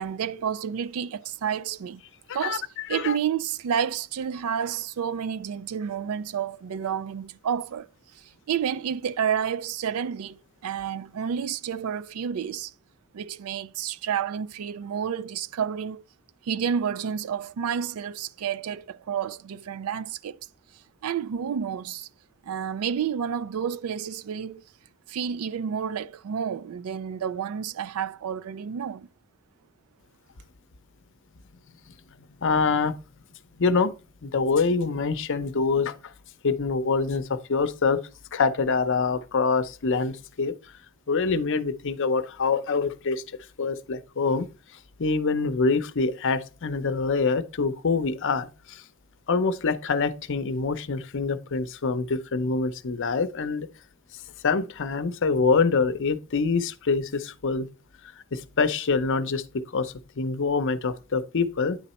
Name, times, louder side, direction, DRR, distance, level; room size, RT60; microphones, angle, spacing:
voice 1, 0.0-2.0 2.3-7.9 8.5-12.7 13.1-16.0 16.5-20.4 21.0-22.1 22.4-24.6 25.1-29.1, right 8 dB, 80° right, 0.4 m, -30 dB
voice 2, 32.4-32.9 33.6-33.9 34.2-35.9 36.4-38.0 38.3-40.5 41.1-43.2 43.6-44.5 45.0-48.8 49.3-53.7 54.4-57.7 58.3-61.8, left 4 dB, 60° left, 0.7 m, -25 dB
9.4 x 4.0 x 4.2 m
head